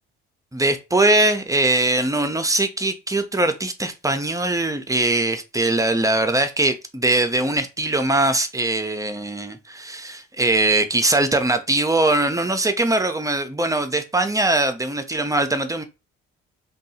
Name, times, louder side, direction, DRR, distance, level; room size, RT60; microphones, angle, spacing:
voice 1, 0.5-15.8, right 2 dB, 10° right, 0.6 m, -21 dB
2.6 x 2.4 x 4.1 m
supercardioid pair, 65°, 31 cm